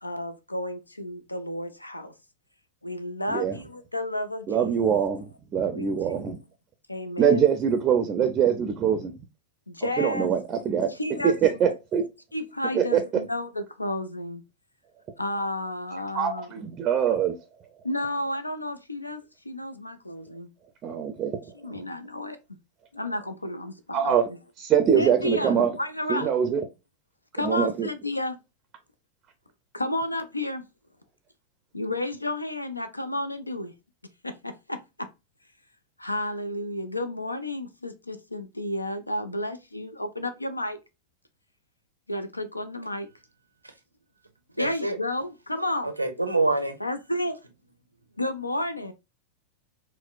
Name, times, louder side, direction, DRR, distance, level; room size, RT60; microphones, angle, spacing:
voice 1, 0.0-2.1 2.8-4.7 5.7-6.3 6.9-7.5 9.7-10.3 10.9-11.5 12.3-14.4 15.2-16.5 17.8-20.5 21.5-22.4 22.9-24.2 24.9-26.3 27.4-28.4 29.7-30.6 31.7-33.7 34.2-34.8 36.0-40.8 42.1-43.1 44.6-45.9 46.8-47.4 48.2-48.9, left 1 dB, 85° left, 0.4 m, -31 dB
voice 2, 4.5-6.4 7.2-9.1 10.0-10.9 11.2-12.0 12.7-13.0 16.1-17.3 20.8-21.4 23.9-24.2 24.6-25.7 26.1-26.6 27.4-27.9, right 8 dB, 30° right, 0.4 m, -23 dB
voice 3, 44.6-45.0 45.8-46.8, right 2 dB, 85° right, 0.5 m, -26 dB
4.2 x 2.1 x 2.3 m
figure-of-eight pair, 90°, 0 cm